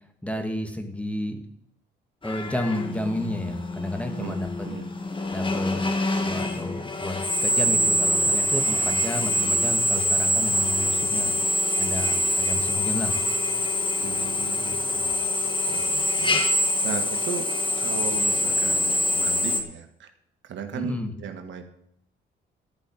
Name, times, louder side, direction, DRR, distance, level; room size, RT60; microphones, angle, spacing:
voice 1, 0.2-1.4 2.2-4.7 5.3-5.8 6.1-11.3 11.8-13.2 14.6-15.0 20.7-21.1, left 1 dB, 5° left, 5 dB, 2.1 m, -31 dB
Drill, 2.2-19.6, left 1 dB, 25° left, 1.7 m, -25 dB
voice 2, 4.1-4.9 14.0-14.8 15.7-16.4 16.8-17.5 17.8-20.1 20.4-21.6, right 7 dB, 70° right, 6 dB, 1.6 m, -36 dB
13.5 x 5.4 x 8.9 m, 0.73 s
cardioid pair, 90°, 20 cm